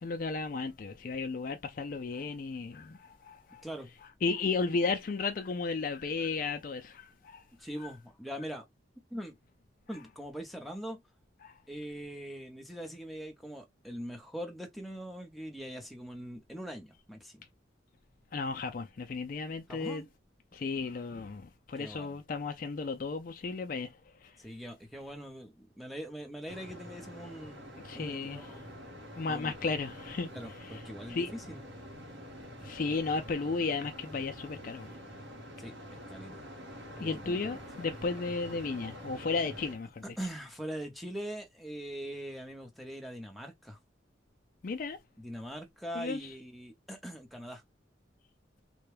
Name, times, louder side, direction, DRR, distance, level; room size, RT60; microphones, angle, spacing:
voice 1, 0.0-3.6 4.2-7.4 11.4-11.6 18.3-20.0 20.5-24.3 27.8-28.5 29.2-30.3 30.6-30.8 31.1-31.3 32.6-34.9 37.0-40.2 44.6-45.0 45.9-46.3, left 4 dB, 45° left, 0.4 m, -34 dB
voice 2, 7.6-8.7 9.1-9.3 9.9-11.0 11.7-17.4 19.7-20.1 21.8-22.2 24.4-28.6 29.3-29.5 30.3-31.6 35.6-35.7 36.1-36.4 37.0-37.9 40.2-43.8 45.2-47.6, equal, ahead, 0.7 m, -42 dB
sound 1, 26.5-39.8, equal, 90° right, 1.3 m, -46 dB
3.4 x 2.2 x 3.2 m
head